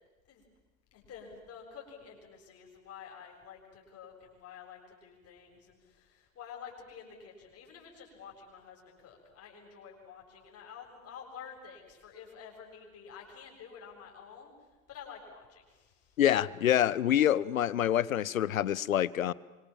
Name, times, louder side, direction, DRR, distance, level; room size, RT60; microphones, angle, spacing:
voice 1, 0.9-16.2, left 7 dB, 35° left, 0 dB, 7.8 m, -50 dB
voice 2, 16.2-19.3, left 11 dB, 75° left, 22 dB, 0.9 m, -26 dB
27.5 x 25.5 x 7.5 m, 1.2 s
figure-of-eight pair, 75°, 41 cm